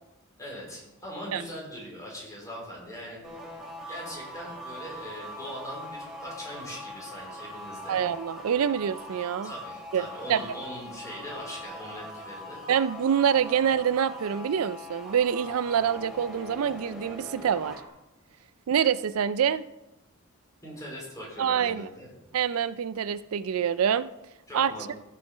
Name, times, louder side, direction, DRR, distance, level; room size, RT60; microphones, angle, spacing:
voice 1, 0.4-3.2 3.9-8.0 9.4-12.6 20.6-22.1 24.5-24.9, equal, 15° left, -3 dB, 4.2 m, -41 dB
sound 1, 3.2-17.9, equal, ahead, 2.7 m, -42 dB
voice 2, 7.9-9.5 9.9-10.4 12.7-17.8 18.7-19.6 21.4-21.9 22.3-24.1 24.5-24.7, right 8 dB, 85° right, 16 dB, 0.4 m, -26 dB
15.5 x 5.8 x 4.9 m, 0.94 s
head